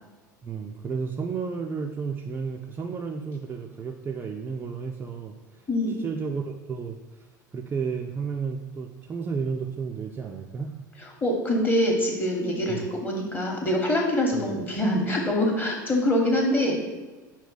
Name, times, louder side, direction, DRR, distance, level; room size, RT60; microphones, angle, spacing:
voice 1, 0.4-5.7 6.0-10.8 12.7-12.9 14.3-14.5, right 5 dB, 20° right, 1 dB, 0.3 m, -32 dB
voice 2, 5.7-6.0 11.2-16.8, left 1 dB, 20° left, 0 dB, 1.0 m, -24 dB
5.5 x 2.2 x 3.9 m, 1.2 s
figure-of-eight pair, 75°, 10 cm